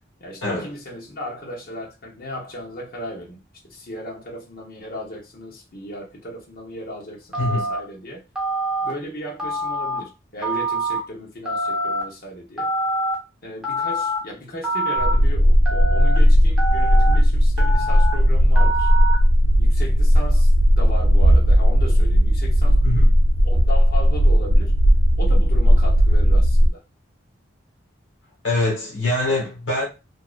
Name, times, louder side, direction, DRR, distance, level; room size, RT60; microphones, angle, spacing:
voice 1, 0.2-8.2 8.8-12.7 13.4-18.9 19.6-22.9 23.4-24.7 25.2-26.8, equal, 45° left, 0.8 m, -36 dB
Telephone, 7.3-7.8 8.4-8.9 9.4-10.0 10.4-11.0 11.5-12.0 12.6-13.2 13.6-14.2 14.6-15.1 15.7-16.2 16.6-17.1 17.6-18.1 18.6-19.1, right 1 dB, 5° right, 0.7 m, -25 dB
sound 1, 15.0-26.7, equal, 50° right, 0.4 m, -16 dB
voice 2, 28.4-29.8, left 2 dB, 70° left, 1.2 m, -23 dB
2.6 x 2.1 x 2.4 m
head